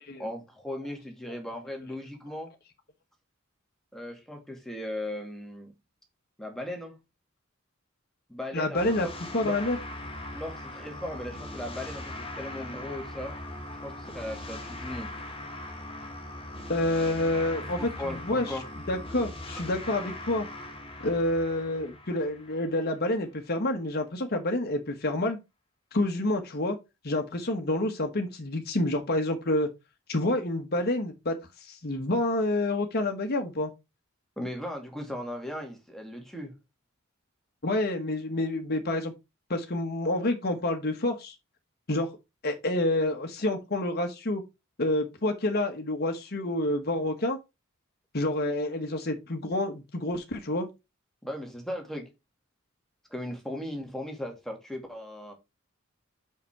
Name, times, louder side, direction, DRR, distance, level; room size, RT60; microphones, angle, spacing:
voice 1, 0.2-2.5 3.9-5.7 6.4-7.0 8.3-9.1 9.4-9.6 10.3-13.4 13.8-15.1 17.8-18.7 19.6-19.7 34.4-36.5 51.2-52.1 53.1-55.3, left 1 dB, ahead, 2.3 m, -37 dB
voice 2, 8.5-9.1 9.3-9.8 16.7-18.6 18.9-20.5 21.0-25.4 25.9-26.8 27.0-29.7 30.1-31.3 31.6-33.7 37.6-39.1 39.5-41.3 41.9-42.1 42.4-44.4 44.8-47.4 48.1-50.7, left 1 dB, 50° left, 1.3 m, -28 dB
sound 1, 8.7-23.1, left 1 dB, 25° left, 1.6 m, -40 dB
5.8 x 5.8 x 4.8 m
head